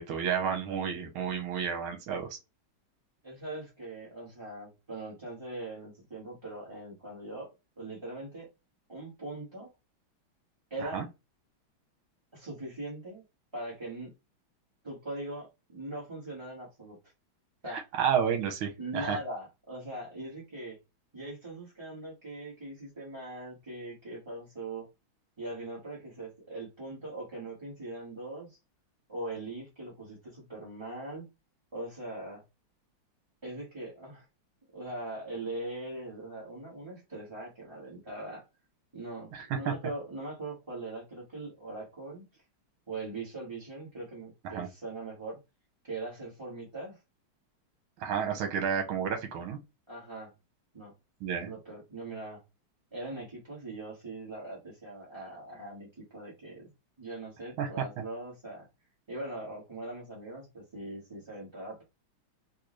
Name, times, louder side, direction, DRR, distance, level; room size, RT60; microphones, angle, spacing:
voice 1, 0.0-2.4 10.8-11.0 17.7-19.2 39.3-39.7 44.4-44.7 48.0-49.6 51.2-51.5 57.6-57.7, right 7 dB, 85° right, 1.7 m, -31 dB
voice 2, 3.2-7.5 7.8-8.5 8.9-9.7 10.7-11.1 12.3-13.2 13.5-14.1 14.8-17.0 17.6-17.9 18.8-20.8 21.1-24.9 25.4-28.6 29.1-31.3 31.7-32.4 33.4-34.3 34.7-38.5 38.9-42.4 42.9-45.4 45.9-47.0 49.9-50.3 50.7-50.9 51.4-52.4 52.9-56.7 57.0-58.7 59.1-61.8, right 2 dB, 15° right, 1.1 m, -41 dB
4.1 x 2.5 x 3.0 m
omnidirectional pair, 2.3 m